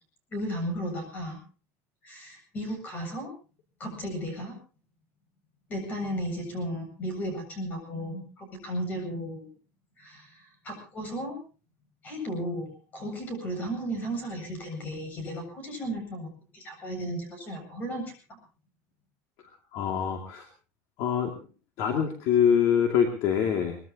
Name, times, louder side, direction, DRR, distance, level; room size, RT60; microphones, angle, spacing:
voice 1, 0.3-1.4 2.0-3.3 3.8-4.6 5.7-9.5 10.0-11.4 12.0-18.0, equal, 25° left, 5 dB, 7.5 m, -34 dB
voice 2, 19.4-20.5 21.0-21.5 21.8-23.8, left 8 dB, 45° left, 4 dB, 2.5 m, -25 dB
23.0 x 21.0 x 2.9 m, 0.36 s
cardioid pair, 180°, 7 cm